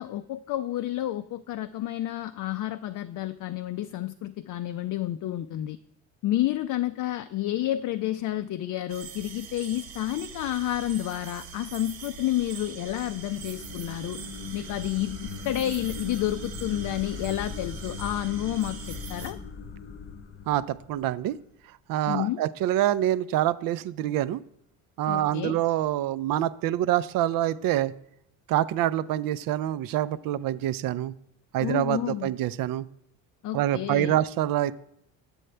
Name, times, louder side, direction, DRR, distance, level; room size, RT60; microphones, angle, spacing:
voice 1, 0.0-5.8 6.2-14.2 14.5-15.2 15.4-19.4 22.0-22.4 25.1-25.6 31.6-32.3 33.4-34.2, left 13 dB, 55° left, 10 dB, 0.5 m, -30 dB
sound 1, 8.9-19.3, right 6 dB, 85° right, 1.3 m, -43 dB
sound 2, 12.1-21.3, left 5 dB, 35° left, 0.8 m, -40 dB
voice 2, 20.5-21.4 21.9-24.4 25.0-27.9 28.5-31.1 31.5-32.8 33.5-34.7, right 13 dB, 65° right, 16 dB, 0.5 m, -26 dB
7.9 x 7.8 x 3.3 m, 0.78 s
supercardioid pair, 85°, 37 cm